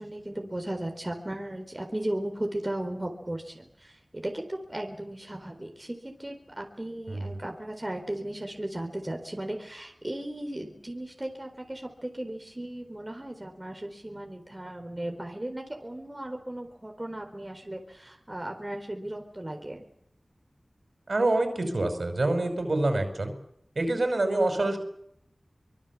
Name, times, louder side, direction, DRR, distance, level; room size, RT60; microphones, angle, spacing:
voice 1, 0.0-19.8, right 1 dB, 25° right, 3 dB, 4.2 m, -36 dB
voice 2, 21.1-23.3 23.8-24.8, right 2 dB, 70° right, 7 dB, 5.6 m, -26 dB
24.5 x 23.0 x 7.3 m, 0.72 s
wide cardioid pair, 50°, 0 cm